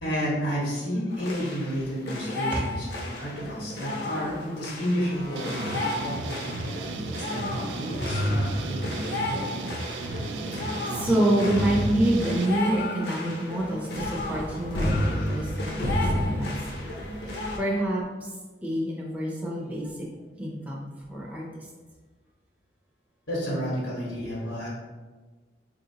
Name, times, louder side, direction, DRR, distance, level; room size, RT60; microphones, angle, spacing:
voice 1, 0.0-5.8 6.0-6.7 7.2-8.9 9.3-9.5 23.3-24.7, equal, 85° left, -6 dB, 1.2 m, -31 dB
sound 1, 1.1-17.6, left 1 dB, 60° left, 0.6 m, -31 dB
sound 2, 5.4-12.5, right 2 dB, 75° right, 0.3 m, -34 dB
voice 2, 10.6-16.9 17.2-18.0 18.6-20.1 20.4-21.5 24.2-24.5, right 1 dB, 10° right, -4 dB, 0.5 m, -27 dB
4.2 x 2.8 x 2.7 m, 1.3 s
head